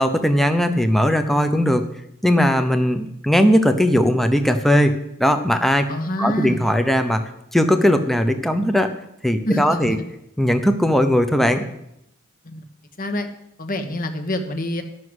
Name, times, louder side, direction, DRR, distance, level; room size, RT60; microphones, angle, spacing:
voice 1, 0.0-1.8 2.2-4.9 5.2-5.8 6.2-7.2 7.5-8.9 9.2-10.0 10.4-11.7, equal, ahead, 7 dB, 0.8 m, -18 dB
voice 2, 5.9-6.6 9.4-10.1 12.4-12.6 13.0-13.3 13.6-14.8, left 1 dB, 40° left, 7 dB, 1.2 m, -26 dB
13.0 x 6.2 x 8.0 m, 0.81 s
head